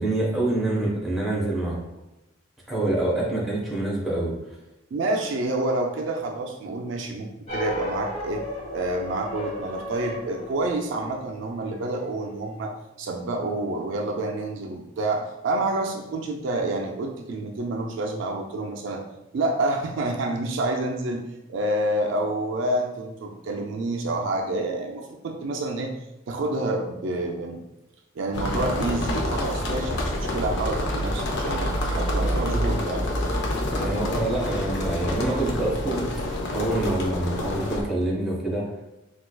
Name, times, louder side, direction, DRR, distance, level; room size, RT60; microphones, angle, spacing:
voice 1, 0.0-1.8 2.7-4.3 33.7-36.0 36.5-38.7, right 2 dB, ahead, -5 dB, 0.9 m, -26 dB
voice 2, 4.9-8.5 8.7-12.7 13.0-19.0 19.3-25.9 26.3-27.6 28.2-33.1, right 2 dB, 65° right, 2 dB, 0.4 m, -28 dB
sound 1, 7.5-12.1, equal, 35° left, 1.2 m, -35 dB
sound 2, 28.3-37.8, left 1 dB, 60° left, 0.5 m, -27 dB
4.3 x 2.3 x 2.2 m, 0.96 s
head